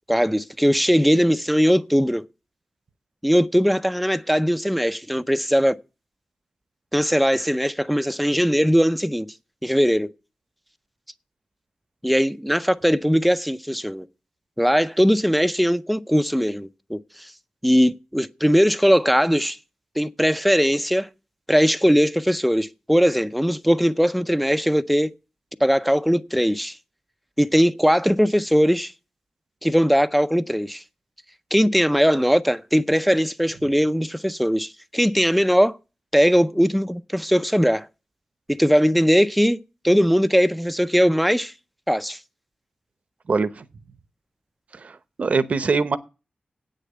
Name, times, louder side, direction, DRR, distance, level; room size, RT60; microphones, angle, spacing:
voice 1, 0.1-2.2 3.2-5.8 6.9-9.3 9.6-10.1 12.0-14.1 14.6-17.3 17.6-19.6 20.0-21.1 21.5-25.1 25.6-26.8 27.4-28.9 29.6-30.8 31.5-35.8 36.1-37.9 38.5-39.6 39.8-41.5 41.9-42.2, equal, ahead, 0.5 m, -20 dB
voice 2, 43.3-43.6 44.7-46.0, right 4 dB, 50° right, 0.8 m, -23 dB
8.6 x 6.6 x 8.5 m
wide cardioid pair, 135°, 3 cm